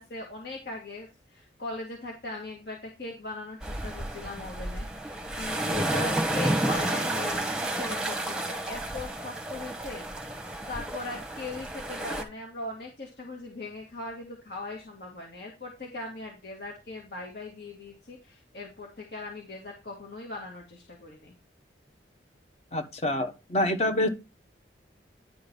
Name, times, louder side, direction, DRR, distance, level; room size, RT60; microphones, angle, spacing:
voice 1, 0.0-10.1 10.7-21.3, left 2 dB, 65° left, -1 dB, 2.0 m, -40 dB
sound 1, 3.6-12.2, right 1 dB, 5° right, 1.1 m, -31 dB
voice 2, 22.7-24.1, left 1 dB, 35° left, 7 dB, 1.1 m, -26 dB
10.5 x 3.9 x 5.3 m, 0.27 s
head